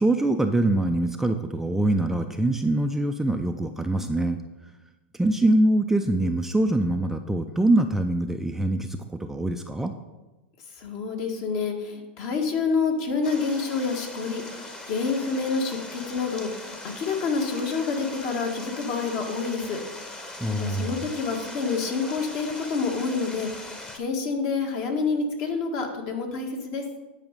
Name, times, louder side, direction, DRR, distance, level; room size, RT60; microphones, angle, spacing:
voice 1, 0.0-4.4 5.1-9.9 20.4-21.0, right 1 dB, 5° right, 5 dB, 0.4 m, -24 dB
voice 2, 10.8-19.8 20.5-26.8, left 4 dB, 50° left, 3 dB, 1.7 m, -28 dB
Stream, 13.2-24.0, left 1 dB, 15° left, 1.1 m, -40 dB
9.4 x 4.9 x 5.3 m, 1.1 s
hypercardioid pair, 110°, 6 cm